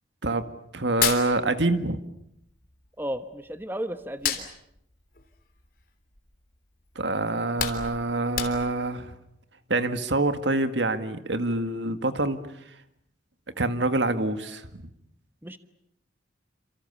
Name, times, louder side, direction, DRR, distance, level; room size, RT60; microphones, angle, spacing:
voice 1, 0.7-2.0 7.0-9.2 9.7-12.4 13.6-14.8, right 2 dB, 80° right, 9 dB, 2.0 m, -26 dB
Hands, 0.8-2.1 2.4-3.6 4.0-6.4 6.8-6.9 7.3-8.9, left 8 dB, 50° left, 3.3 m, -31 dB
voice 2, 3.0-4.5 15.4-15.6, equal, 10° right, 9 dB, 1.1 m, -34 dB
28.5 x 27.0 x 7.1 m, 0.76 s
head